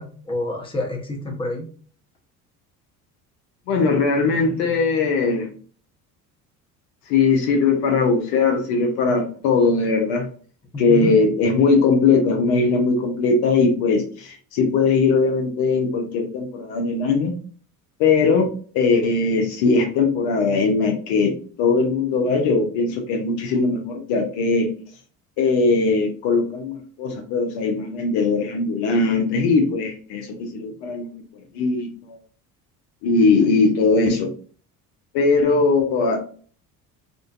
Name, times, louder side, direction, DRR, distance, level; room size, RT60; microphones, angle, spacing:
voice 1, 0.0-1.7 10.7-11.1, left 1 dB, 10° left, 1 dB, 0.7 m, -28 dB
voice 2, 3.7-5.5 7.1-10.3 10.8-17.4 18.0-21.3 21.6-24.7 25.4-31.1 31.5-32.2 33.0-34.3 35.1-36.2, left 4 dB, 65° left, 3 dB, 0.7 m, -20 dB
2.5 x 2.2 x 2.3 m, 0.43 s
hypercardioid pair, 60°, 46 cm